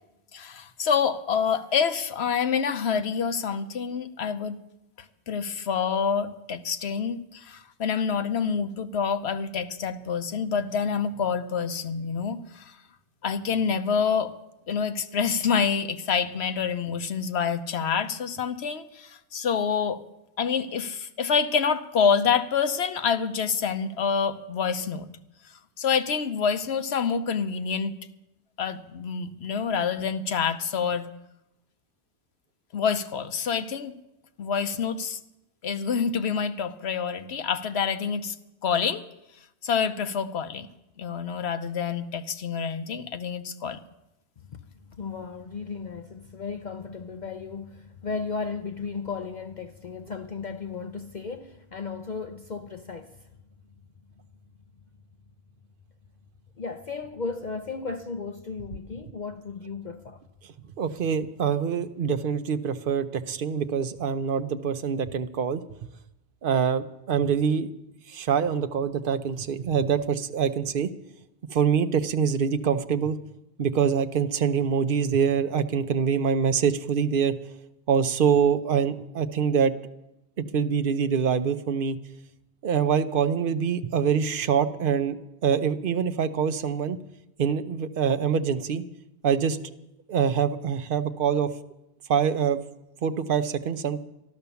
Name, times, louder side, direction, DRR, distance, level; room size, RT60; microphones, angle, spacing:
voice 1, 0.3-4.6 5.3-12.8 13.2-14.3 14.7-20.0 20.4-25.1 25.8-28.0 28.6-31.1 32.7-33.9 34.4-35.2 35.6-38.3 38.6-39.0 39.6-40.7 41.0-43.8, left 6 dB, 75° left, 1.1 m, -27 dB
voice 2, 45.0-53.3 56.6-60.2, left 4 dB, 50° left, 0.7 m, -35 dB
voice 3, 60.8-65.6 66.4-67.7 68.1-70.9 71.5-73.2 73.6-77.3 77.9-79.7 80.4-82.0 82.6-87.0 87.4-88.8 89.2-89.6 90.1-91.5 92.1-92.6 93.0-94.0, right 7 dB, 55° right, 0.9 m, -25 dB
13.0 x 12.0 x 7.0 m
omnidirectional pair, 1.1 m